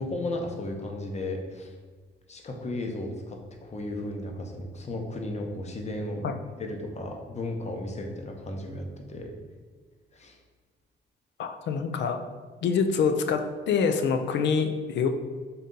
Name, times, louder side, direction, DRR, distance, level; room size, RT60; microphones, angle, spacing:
voice 1, 0.0-1.7 2.3-6.2 6.6-9.3 10.1-10.4, left 1 dB, 35° left, 2 dB, 0.7 m, -34 dB
voice 2, 11.4-12.2 12.6-13.4 13.7-15.1, left 6 dB, 65° left, 7 dB, 0.5 m, -25 dB
3.9 x 2.7 x 3.7 m, 1.5 s
cardioid pair, 90°, 20 cm